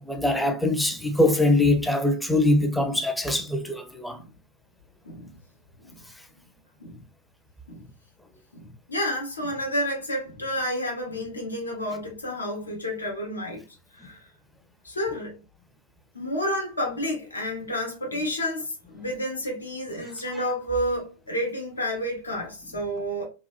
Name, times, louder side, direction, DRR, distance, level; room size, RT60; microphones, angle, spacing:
voice 1, 0.1-4.2, left 2 dB, 5° left, 0.4 m, -22 dB
voice 2, 8.5-13.6 13.9-14.3 14.8-15.4 16.1-23.3, equal, 75° left, 0.7 m, -30 dB
2.7 x 2.1 x 2.3 m
figure-of-eight pair, 90°, 0 cm